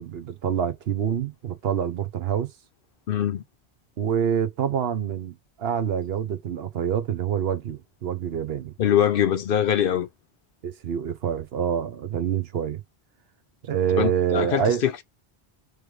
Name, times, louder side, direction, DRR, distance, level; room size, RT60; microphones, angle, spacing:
voice 1, 0.0-2.5 4.0-8.7 10.6-12.8 13.6-14.8, right 8 dB, 70° right, 1.0 m, -26 dB
voice 2, 3.1-3.4 8.8-10.1 14.0-15.0, left 9 dB, 60° left, 0.8 m, -23 dB
3.3 x 3.2 x 3.1 m
omnidirectional pair, 1.1 m